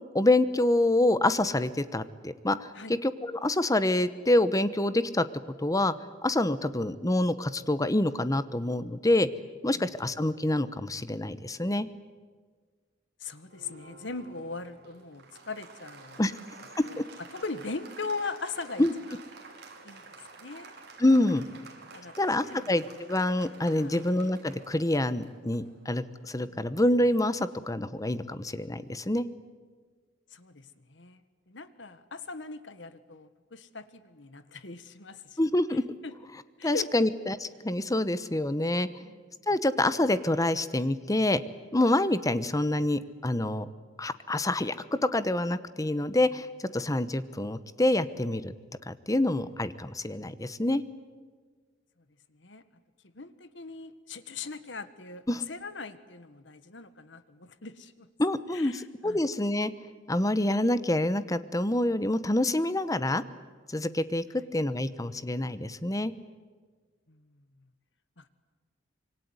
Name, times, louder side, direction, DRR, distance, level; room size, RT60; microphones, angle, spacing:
voice 1, 0.1-2.7 3.0-5.2 5.6-5.9 6.2-9.3 9.6-11.9 16.2-16.3 17.0-17.1 18.8-18.9 21.0-21.4 22.2-29.3 35.4-35.8 36.6-37.4 37.6-38.9 39.5-41.4 41.7-43.7 44.0-46.5 46.7-48.5 48.9-50.8 55.3-55.4 58.2-59.7 60.1-63.2 63.7-66.1, left 1 dB, 20° left, 14 dB, 1.0 m, -26 dB
voice 2, 13.2-16.2 16.8-17.1 17.3-19.2 19.8-20.1 20.4-20.7 21.9-23.0 23.7-24.0 26.4-26.7 30.3-35.4 35.7-36.1 36.6-37.1 39.0-39.3 52.3-52.6 53.1-58.1 58.5-59.3 67.1-67.7 68.2-68.3, left 4 dB, 70° left, 13 dB, 1.6 m, -40 dB
Applause, 13.5-27.8, right 3 dB, 60° right, 5.0 m, -51 dB
26.0 x 24.0 x 9.7 m, 1.5 s
head